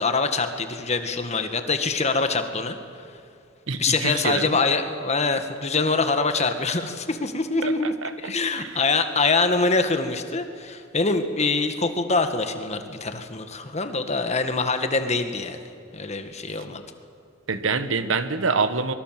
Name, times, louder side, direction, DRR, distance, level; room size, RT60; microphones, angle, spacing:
voice 1, 0.0-2.8 3.8-15.6 15.9-16.8, left 3 dB, 35° left, 7 dB, 1.8 m, -24 dB
voice 2, 3.7-4.6 7.6-8.3 8.6-8.8 17.5-18.9, right 4 dB, 70° right, 11 dB, 1.3 m, -26 dB
24.0 x 23.0 x 7.6 m, 2.4 s
head